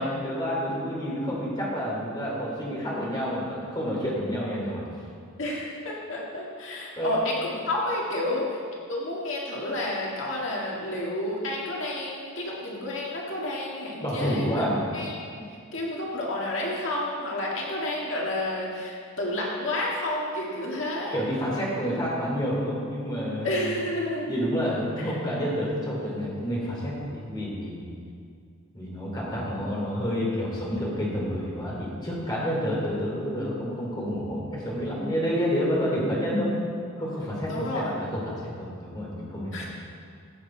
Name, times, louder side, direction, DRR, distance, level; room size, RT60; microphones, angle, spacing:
voice 1, 0.0-4.8 7.0-7.1 14.0-14.8 21.1-23.7 24.3-27.9 28.7-36.6 37.0-39.7, equal, 20° left, -5 dB, 3.0 m, -29 dB
voice 2, 5.4-8.6 8.9-14.6 14.9-15.1 15.7-21.2 23.4-24.3 25.0-25.1 37.5-37.9 39.5-39.7, left 1 dB, 60° left, -3 dB, 1.8 m, -30 dB
16.0 x 7.8 x 4.5 m, 2.3 s
head